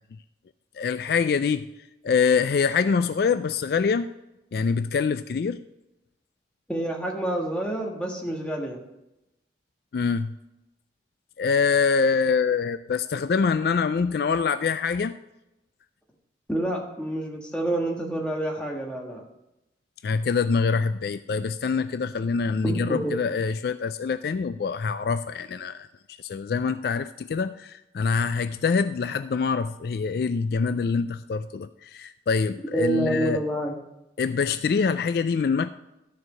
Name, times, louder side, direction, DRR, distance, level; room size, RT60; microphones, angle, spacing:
voice 1, 0.8-1.7 2.0-4.1 4.5-5.6 9.9-10.3 11.4-15.1 20.0-25.9 26.2-33.4 34.2-35.7, left 5 dB, 55° left, 11 dB, 0.3 m, -25 dB
voice 2, 6.7-8.8 16.5-19.2 22.6-23.1 32.7-33.7, right 1 dB, 5° left, 0 dB, 1.5 m, -28 dB
13.5 x 4.7 x 6.2 m, 0.92 s
head